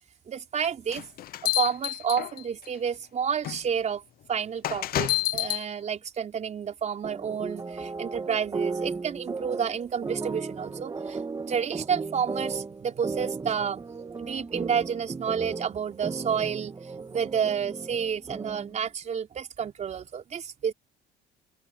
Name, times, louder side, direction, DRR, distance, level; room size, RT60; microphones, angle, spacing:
voice 1, 0.3-1.0 1.4-4.0 4.3-11.2 11.5-13.8 14.2-20.7, right 7 dB, 45° right, 5.0 m, -30 dB
sound 1, 0.9-2.7 3.4-3.6 4.6-5.6, left 14 dB, 60° left, 0.8 m, -28 dB
sound 2, 7.0-18.8, right 4 dB, 20° right, 1.9 m, -36 dB
open air
cardioid pair, 110°, 17 cm